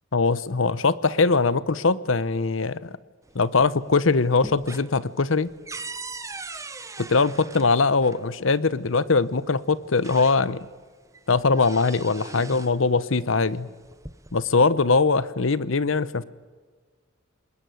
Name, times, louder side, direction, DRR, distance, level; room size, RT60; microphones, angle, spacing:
voice 1, 0.1-2.9 3.3-5.5 7.1-10.7 11.3-13.7 14.3-16.2, left 4 dB, 70° left, 17 dB, 0.9 m, -21 dB
sound 1, 3.3-3.9 4.2-8.2 9.3-9.4 9.8-10.8 11.1-12.8 13.7-14.5, right 3 dB, 15° right, 1.0 m, -40 dB
30.0 x 20.5 x 9.4 m, 1.5 s
head